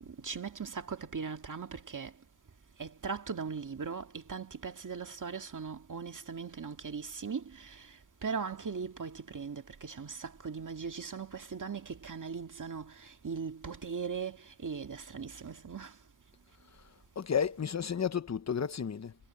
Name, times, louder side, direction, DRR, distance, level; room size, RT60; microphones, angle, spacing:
voice 1, 0.0-2.1 2.8-16.0, right 5 dB, 40° right, 2.1 m, -39 dB
voice 2, 17.2-19.2, left 7 dB, 35° left, 0.9 m, -32 dB
wide cardioid pair, 140°, 46 cm